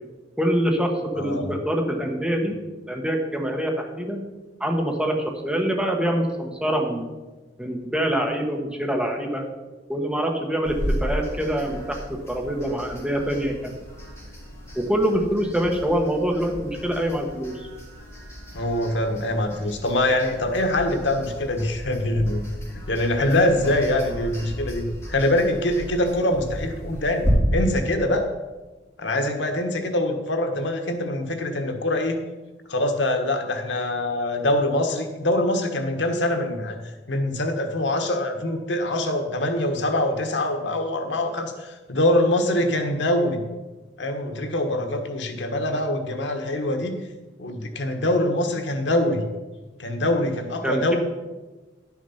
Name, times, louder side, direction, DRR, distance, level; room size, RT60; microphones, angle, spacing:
voice 1, 0.4-2.5 2.9-4.2 4.6-5.2 5.4-7.1 7.6-9.4 9.9-10.7 11.0-12.0 12.3-13.7 14.7-17.6 50.6-51.0, equal, 5° right, 1 dB, 1.3 m, -25 dB
voice 2, 1.2-1.6 18.5-22.5 22.8-28.3 29.0-32.2 32.7-36.8 37.1-43.4 44.0-47.0 47.4-49.2 49.8-51.0, left 1 dB, 90° left, 5 dB, 1.3 m, -24 dB
sound 1, 10.6-27.3, equal, 15° left, 3.6 m, -35 dB
11.0 x 6.4 x 5.7 m, 1.2 s
head